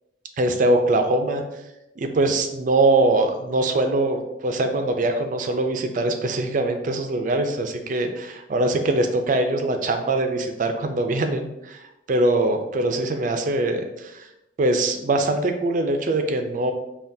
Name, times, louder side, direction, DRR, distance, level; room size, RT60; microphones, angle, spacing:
voice 1, 0.4-1.4 2.0-11.8 12.1-14.3 14.6-16.7, right 2 dB, 45° right, 6 dB, 0.4 m, -22 dB
5.7 x 2.3 x 2.6 m, 0.92 s
head